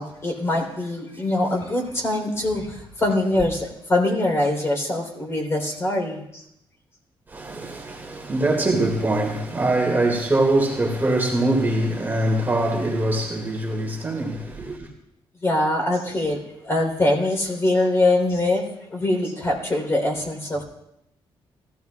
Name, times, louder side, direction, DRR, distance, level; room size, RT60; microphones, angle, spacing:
voice 1, 0.0-6.4 15.4-20.6, left 2 dB, 30° left, 3.6 m, -23 dB
voice 2, 7.3-14.9, right 2 dB, 20° right, 2.2 m, -23 dB
20.0 x 15.0 x 2.4 m
cardioid pair, 120°, 9 cm